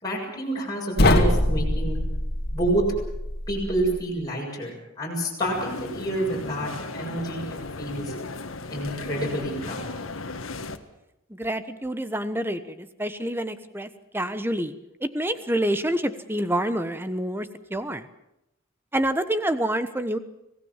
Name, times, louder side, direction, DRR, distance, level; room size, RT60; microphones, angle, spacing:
voice 1, 0.0-2.0 2.5-2.9 3.5-7.4 7.8-8.1 8.7-9.9, right 1 dB, 20° left, -4 dB, 7.1 m, -28 dB
sound 1, 1.0-4.0, left 1 dB, 50° left, 2.5 m, -24 dB
sound 2, 5.4-10.8, left 3 dB, 90° left, 1.7 m, -35 dB
voice 2, 11.4-14.7 15.0-18.0 18.9-20.2, right 1 dB, 10° right, 11 dB, 1.1 m, -27 dB
26.0 x 17.5 x 7.4 m, 0.86 s
head